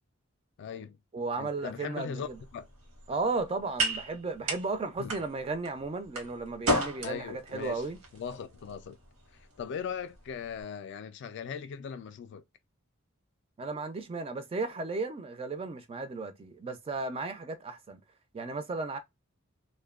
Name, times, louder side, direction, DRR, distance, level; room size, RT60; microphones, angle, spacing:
voice 1, 0.6-1.0 1.4-2.7 5.0-5.1 7.0-7.8 8.1-9.0 9.3-12.4, left 7 dB, 55° left, 0.3 m, -39 dB
voice 2, 1.1-2.4 3.1-8.0 13.6-18.0 18.3-19.0, right 3 dB, 25° right, 0.3 m, -34 dB
sound 1, 2.2-10.6, right 1 dB, 80° right, 0.9 m, -36 dB
2.6 x 2.1 x 2.3 m
head